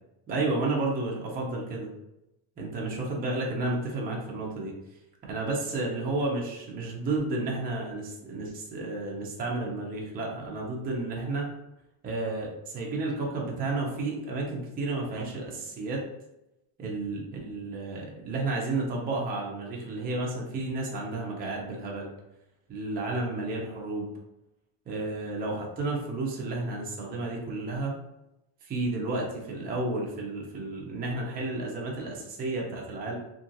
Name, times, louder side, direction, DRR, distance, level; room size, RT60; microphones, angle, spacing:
voice 1, 0.3-1.9 2.6-4.7 5.3-11.5 12.0-16.0 16.8-22.1 22.7-24.1 24.9-27.9 28.6-33.2, right 2 dB, 20° right, -2 dB, 0.5 m, -32 dB
3.0 x 2.4 x 2.7 m, 0.91 s
cardioid pair, 145°, 48 cm